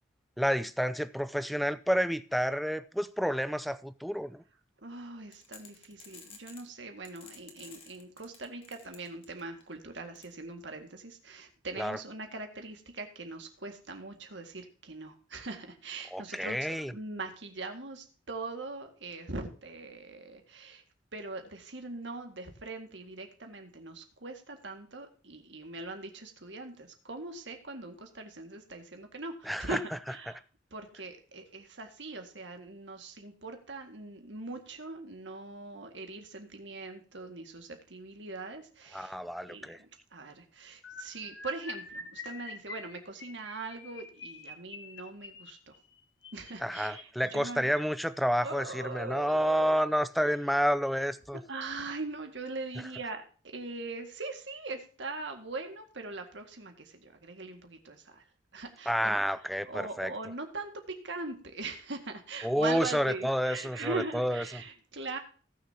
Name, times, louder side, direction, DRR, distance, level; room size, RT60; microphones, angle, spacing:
voice 1, 0.4-4.4 11.8-12.0 16.1-16.9 29.5-29.8 38.9-39.8 46.6-51.4 58.9-60.1 62.4-64.4, equal, ahead, 0.4 m, -29 dB
voice 2, 4.8-20.8 21.1-30.4 30.7-39.2 39.5-45.7 46.3-47.7 48.4-49.9 51.3-58.2 58.5-59.2 59.7-65.2, right 3 dB, 70° right, 1.9 m, -41 dB
sound 1, 5.3-6.7 7.1-9.6 10.2-10.3, left 5 dB, 30° left, 1.8 m, -51 dB
sound 2, 40.8-48.0 48.8-49.0 49.3-49.5 49.8-50.0, left 4 dB, 70° left, 1.7 m, -46 dB
18.5 x 6.6 x 2.8 m
head